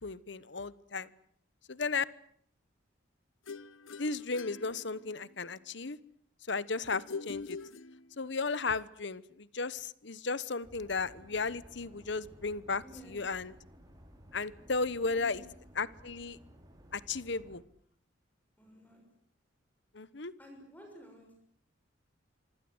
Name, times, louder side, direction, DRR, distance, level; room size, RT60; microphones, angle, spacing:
voice 1, 0.0-1.1 1.7-2.0 4.0-6.0 6.5-7.6 8.2-13.5 14.3-15.4 15.8-16.4 16.9-17.6 19.9-20.3, left 4 dB, 60° left, 19 dB, 1.1 m, -35 dB
sound 1, 3.5-5.4 6.9-8.4, left 4 dB, 80° left, 1.1 m, -44 dB
sound 2, 10.6-17.6, equal, 20° right, 5.4 m, -56 dB
voice 2, 12.8-13.2 15.0-15.5 18.6-19.1 20.4-21.3, equal, 10° left, 2 dB, 6.4 m, -53 dB
26.5 x 25.5 x 8.0 m, 0.64 s
head